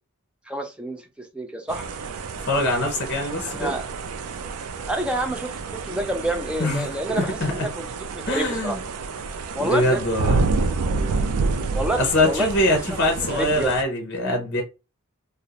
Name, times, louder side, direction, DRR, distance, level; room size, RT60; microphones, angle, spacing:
voice 1, 0.5-1.9 3.4-3.9 4.9-7.9 8.1-8.8 9.5-10.0 10.7-10.8 11.7-13.0 13.3-13.7, right 1 dB, 5° right, 0.3 m, -28 dB
sound 1, 1.7-13.8, right 3 dB, 85° right, 0.4 m, -29 dB
voice 2, 2.5-3.8 6.6-7.7 8.3-8.8 9.6-10.4 12.0-14.6, left 1 dB, 50° left, 0.7 m, -23 dB
2.4 x 2.0 x 2.7 m
head